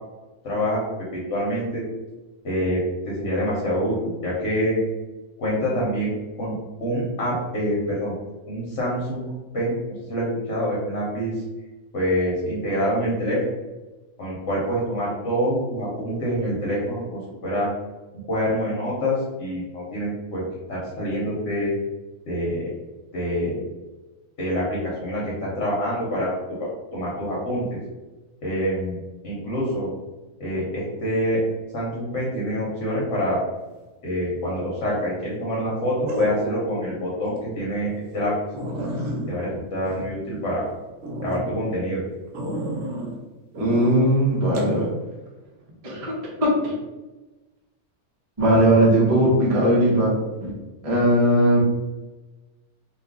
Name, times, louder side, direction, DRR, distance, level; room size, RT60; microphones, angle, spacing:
voice 1, 0.4-1.8 2.4-4.8 5.4-6.5 6.8-8.1 8.5-9.2 9.5-9.8 10.1-11.3 11.9-13.4 14.2-17.7 18.3-20.4 20.7-21.7 22.3-22.7 23.1-23.6 24.4-26.3 26.6-27.6 28.4-29.9 30.4-31.4 31.7-33.4 34.0-38.3 39.3-40.7 41.2-42.0, equal, 60° left, -5 dB, 1.1 m, -26 dB
sound 1, 34.5-34.9 36.1-36.8 37.3-37.4 37.9-38.0 38.2-38.3 38.5-40.6 41.0-41.4 42.3-43.1 43.5-44.0 44.5-44.7, right 1 dB, 60° right, 0.9 m, -30 dB
voice 2, 43.6-44.9 45.8-46.7 48.4-50.5 50.8-51.6, right 1 dB, 35° right, -4 dB, 0.6 m, -19 dB
2.8 x 2.4 x 3.6 m, 1.1 s
omnidirectional pair, 1.5 m